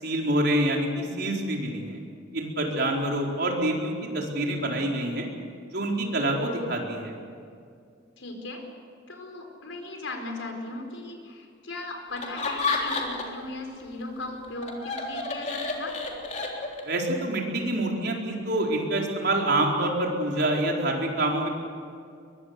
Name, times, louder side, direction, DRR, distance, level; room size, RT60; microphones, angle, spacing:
voice 1, 0.0-2.0 2.3-5.3 5.7-7.1 16.9-21.5, right 1 dB, 60° right, 0 dB, 4.5 m, -26 dB
voice 2, 8.2-8.6 9.1-16.0, left 2 dB, 90° left, 4 dB, 4.8 m, -37 dB
Laughter, 12.2-13.5 13.8-17.0, left 3 dB, 40° left, 3.6 m, -30 dB
23.5 x 22.0 x 8.2 m, 2.3 s
head